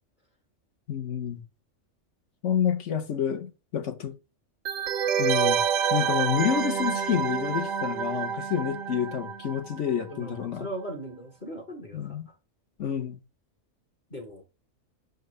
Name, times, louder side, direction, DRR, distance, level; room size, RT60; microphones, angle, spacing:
voice 1, 0.9-1.4 2.4-4.1 5.2-5.6 5.9-10.7 11.9-12.3 12.8-13.2, left 8 dB, 65° left, 1.2 m, -28 dB
sound 1, 4.7-10.1 10.4-10.5, right 7 dB, 90° right, 1.0 m, -28 dB
voice 2, 10.1-12.2 14.1-14.4, right 1 dB, 40° left, 1.2 m, -39 dB
6.6 x 4.6 x 3.1 m
omnidirectional pair, 1.3 m